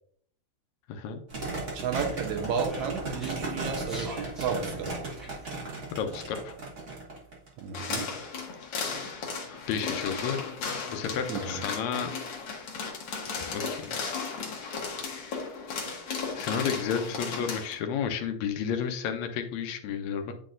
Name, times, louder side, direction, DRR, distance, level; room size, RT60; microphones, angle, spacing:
voice 1, 0.9-1.2 5.9-6.6 9.7-10.4 10.9-12.1 13.5-14.0 16.4-20.3, left 7 dB, 80° left, 6 dB, 1.8 m, -31 dB
sound 1, 1.3-8.3, right 3 dB, 40° right, 1.1 m, -36 dB
voice 2, 1.7-4.9 7.6-8.1 11.3-11.7, right 6 dB, 80° right, 4 dB, 2.1 m, -32 dB
Speech, 2.1-5.5, equal, ahead, 0.3 m, -44 dB
sound 2, 7.7-17.7, left 5 dB, 55° left, 1.5 m, -35 dB
9.8 x 4.0 x 2.5 m, 0.65 s
omnidirectional pair, 3.4 m